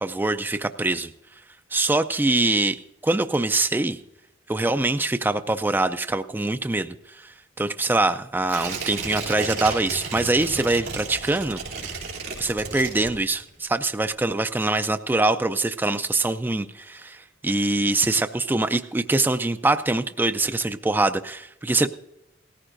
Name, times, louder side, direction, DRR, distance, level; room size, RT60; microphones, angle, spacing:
voice 1, 0.0-1.1 1.7-4.0 4.5-11.6 12.4-21.9, right 2 dB, 10° right, 9 dB, 0.3 m, -24 dB
Tearing, 8.4-13.6 13.9-14.0, right 4 dB, 55° right, 3.1 m, -33 dB
17.5 x 14.5 x 2.6 m, 0.84 s
head